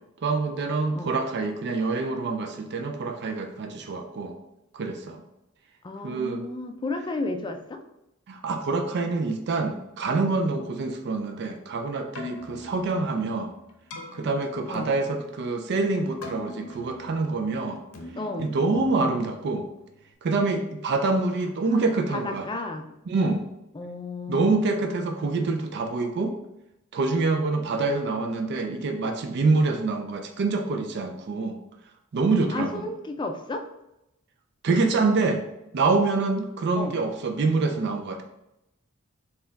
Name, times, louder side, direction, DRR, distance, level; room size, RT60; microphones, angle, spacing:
voice 1, 0.2-4.4 4.7-5.2 6.0-6.4 8.3-13.5 14.1-17.8 18.4-19.7 20.2-22.5 23.1-23.4 24.3-26.4 26.9-31.6 32.1-32.9 34.6-35.4 35.7-38.2, right 3 dB, 50° right, 5 dB, 0.4 m, -26 dB
voice 2, 5.8-7.8 14.7-14.9 18.2-18.5 18.9-19.1 21.3-22.8 23.7-25.3 32.5-33.7 36.8-36.9, left 2 dB, 20° left, 6 dB, 0.3 m, -33 dB
Keyboard (musical), 12.0-20.1, left 1 dB, 85° left, 0.7 m, -44 dB
4.2 x 2.3 x 3.9 m, 0.87 s
head